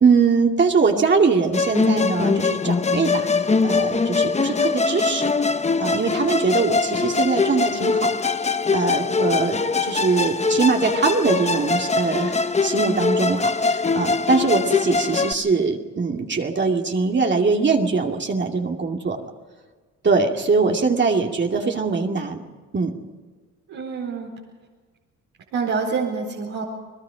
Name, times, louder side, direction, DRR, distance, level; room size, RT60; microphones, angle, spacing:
voice 1, 0.0-5.3 5.8-8.3 8.7-19.2 20.0-22.4 22.7-23.0, right 4 dB, 35° right, 2 dB, 2.4 m, -22 dB
Musical instrument, 1.5-15.3, left 4 dB, 20° left, 0.8 m, -22 dB
voice 2, 23.7-24.3 25.5-26.6, right 5 dB, 85° right, -3 dB, 4.4 m, -26 dB
30.0 x 20.0 x 5.1 m, 1.4 s
cardioid pair, 90°, 30 cm